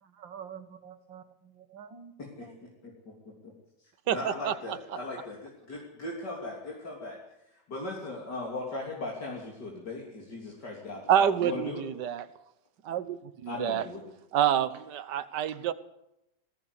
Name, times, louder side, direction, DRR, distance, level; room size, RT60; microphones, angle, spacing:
voice 1, 0.0-2.1 2.4-2.6 2.8-2.9, right 7 dB, 85° right, 9 dB, 2.3 m, -47 dB
voice 2, 2.2-3.1 3.4-3.5 4.1-7.2 7.5-11.8 13.5-14.0, left 2 dB, 65° left, -3 dB, 3.8 m, -38 dB
voice 3, 4.1-4.5 11.1-12.2 12.8-13.8 14.3-15.7, right 9 dB, 70° right, 13 dB, 1.6 m, -27 dB
19.5 x 16.5 x 8.3 m, 0.85 s
omnidirectional pair, 2.0 m